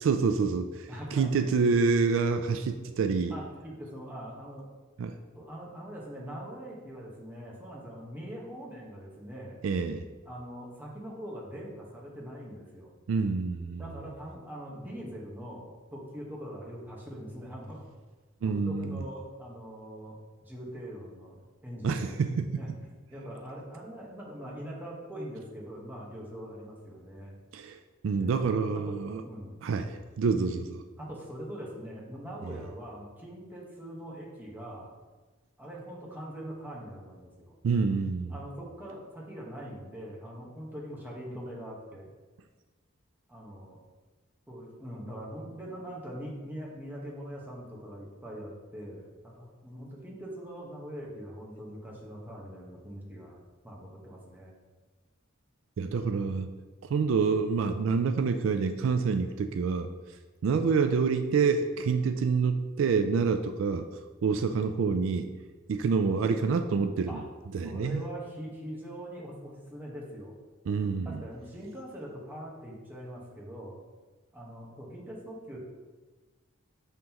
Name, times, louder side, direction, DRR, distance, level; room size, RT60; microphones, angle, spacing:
voice 1, 0.0-3.3 5.0-5.1 9.6-10.0 13.1-13.8 18.4-19.0 21.8-22.6 27.5-27.8 28.0-29.2 29.6-30.8 32.4-32.5 37.6-38.3 55.8-56.5 56.9-59.9 60.4-63.9 64.2-65.3 65.7-67.2 67.5-68.0 70.7-71.2, right 5 dB, 70° right, 8 dB, 0.3 m, -27 dB
voice 2, 0.9-1.4 3.3-4.7 5.3-9.6 10.2-12.9 13.7-17.9 18.4-27.4 28.2-28.3 28.9-29.0 29.2-29.6 31.0-35.0 35.6-37.5 38.3-42.1 43.3-43.8 44.5-53.4 53.6-54.5 67.1-67.2 67.6-70.3 71.0-73.8 74.3-75.6, equal, 10° right, -4 dB, 1.2 m, -42 dB
6.3 x 5.7 x 3.0 m, 1.3 s
head